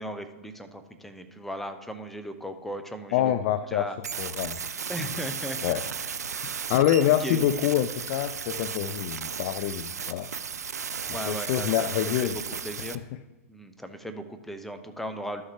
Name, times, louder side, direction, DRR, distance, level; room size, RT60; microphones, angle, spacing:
voice 1, 0.0-4.0 4.9-6.1 7.0-7.4 11.1-13.0 13.5-15.4, equal, 5° left, 7 dB, 0.6 m, -37 dB
voice 2, 3.1-3.9 4.2-4.6 5.6-5.8 6.7-10.3 10.6-10.7 11.1-12.4, left 12 dB, 45° left, 12 dB, 0.4 m, -26 dB
sound 1, 4.0-12.9, right 6 dB, 90° right, 0.4 m, -35 dB
12.5 x 6.5 x 3.2 m, 1.1 s
hypercardioid pair, 115°, 8 cm